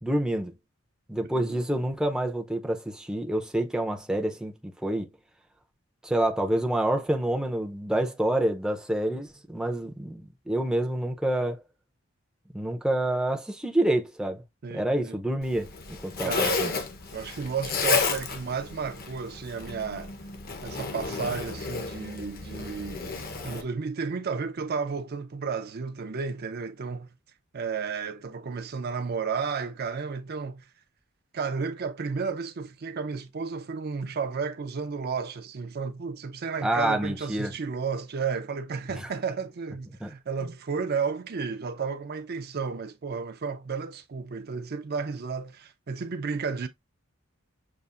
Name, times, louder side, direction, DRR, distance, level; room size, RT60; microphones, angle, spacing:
voice 1, 0.0-0.5 1.1-4.5 4.8-5.1 6.0-11.6 12.5-14.4 14.7-15.7 16.0-16.7 36.6-37.5 39.0-39.1 40.0-40.1, right 1 dB, 5° right, 0.5 m, -27 dB
voice 2, 14.6-15.2 16.2-16.6 17.1-20.1 20.6-27.1 27.5-30.6 31.3-46.7, right 5 dB, 50° right, 0.5 m, -32 dB
Zipper (clothing), 15.4-23.6, left 4 dB, 45° left, 0.8 m, -32 dB
6.7 x 2.5 x 2.4 m
head